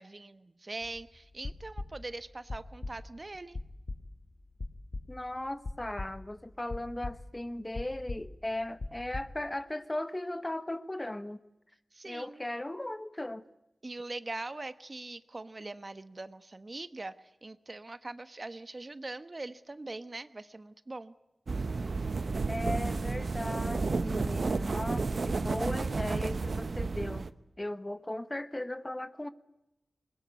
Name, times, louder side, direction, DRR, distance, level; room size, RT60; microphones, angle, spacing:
voice 1, 0.0-3.6 11.9-12.4 13.8-21.1, right 2 dB, 40° right, 12 dB, 1.1 m, -42 dB
sound 1, 0.8-1.0 1.3-2.2 2.5-3.1 3.5-4.2 4.6-5.4 5.6-6.3 6.7-7.5 7.8-9.3, left 2 dB, 55° left, 2.4 m, -40 dB
voice 2, 5.1-11.4 12.0-13.4 22.5-27.3 27.6-29.3, left 1 dB, 20° left, 13 dB, 1.2 m, -37 dB
sound 2, 21.5-27.3, right 3 dB, 65° right, 0.9 m, -31 dB
21.0 x 21.0 x 9.6 m, 0.91 s
cardioid pair, 55°, 0 cm